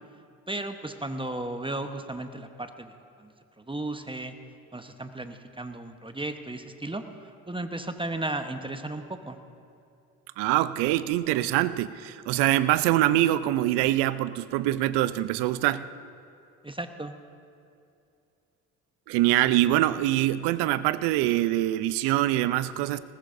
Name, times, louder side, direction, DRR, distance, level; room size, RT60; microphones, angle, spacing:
voice 1, 0.5-4.3 4.7-9.4 16.6-17.2, right 2 dB, 10° right, 7 dB, 1.0 m, -35 dB
voice 2, 10.4-15.8 19.1-23.0, right 15 dB, 75° right, 16 dB, 0.6 m, -24 dB
20.5 x 19.0 x 2.7 m, 2.6 s
hypercardioid pair, 50°, 41 cm